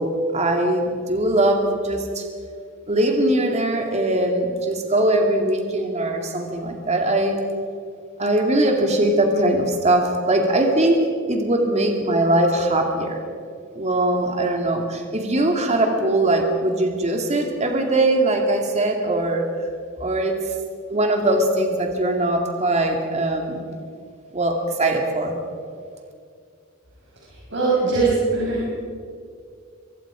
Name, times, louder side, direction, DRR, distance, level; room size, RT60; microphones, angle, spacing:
voice 1, 0.0-2.2 2.9-7.4 8.2-13.2 13.7-19.5 20.0-20.4 20.9-23.6 24.3-25.3, right 1 dB, 35° right, 3 dB, 2.4 m, -21 dB
voice 2, 27.5-28.6, right 3 dB, 60° right, -5 dB, 6.0 m, -20 dB
24.5 x 22.0 x 5.0 m, 2.3 s
head